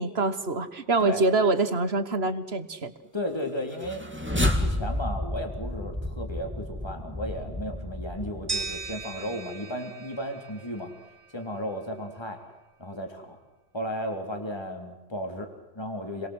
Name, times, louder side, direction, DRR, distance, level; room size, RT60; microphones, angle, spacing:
voice 1, 0.0-2.9, right 3 dB, 60° right, 12 dB, 1.8 m, -25 dB
voice 2, 3.1-4.1 4.6-10.9 11.3-12.4 12.8-13.4 13.7-16.3, equal, 20° left, 4 dB, 3.7 m, -34 dB
sound 1, 3.7-9.0, left 1 dB, 10° right, 2.8 m, -31 dB
sound 2, 8.5-11.4, right 4 dB, 35° right, 1.8 m, -37 dB
29.5 x 22.5 x 8.2 m, 1.1 s
omnidirectional pair, 1.2 m